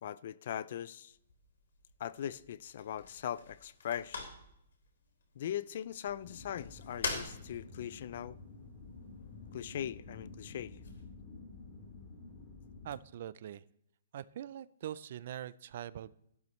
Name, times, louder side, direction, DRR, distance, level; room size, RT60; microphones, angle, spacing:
voice 1, 0.0-1.1 2.0-4.3 5.4-8.4 9.5-10.7, left 10 dB, 45° left, 0.4 m, -40 dB
sound 1, 1.1-11.0, left 4 dB, 80° left, 3.6 m, -47 dB
sound 2, 6.2-12.9, left 3 dB, 25° left, 2.5 m, -51 dB
voice 2, 12.8-13.6 14.1-16.1, right 11 dB, 40° right, 0.4 m, -43 dB
14.5 x 12.0 x 3.1 m
hypercardioid pair, 175°, 0 cm